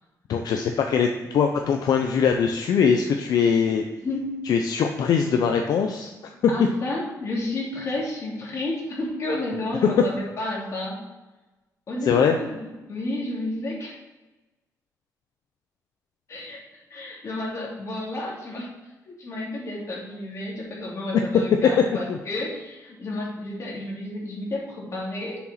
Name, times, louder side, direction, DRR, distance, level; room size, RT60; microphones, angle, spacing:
voice 1, 0.3-3.8 4.5-6.1 12.0-12.4 22.1-22.2, left 6 dB, 80° left, 4 dB, 0.6 m, -22 dB
voice 2, 6.5-11.0 11.9-13.9 16.3-18.7 19.0-25.4, left 2 dB, 50° left, -4 dB, 2.9 m, -31 dB
6.9 x 4.9 x 5.7 m, 1.1 s
cardioid pair, 125°, 7 cm